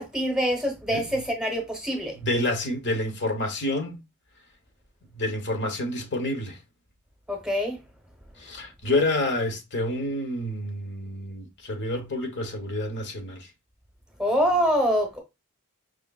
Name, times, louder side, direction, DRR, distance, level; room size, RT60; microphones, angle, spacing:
voice 1, 0.0-2.2 7.3-7.8 14.2-15.2, equal, 5° right, 0.9 m, -25 dB
voice 2, 2.2-4.0 5.1-6.6 8.4-13.5, left 1 dB, 50° left, 0.9 m, -28 dB
5.1 x 3.2 x 2.2 m
head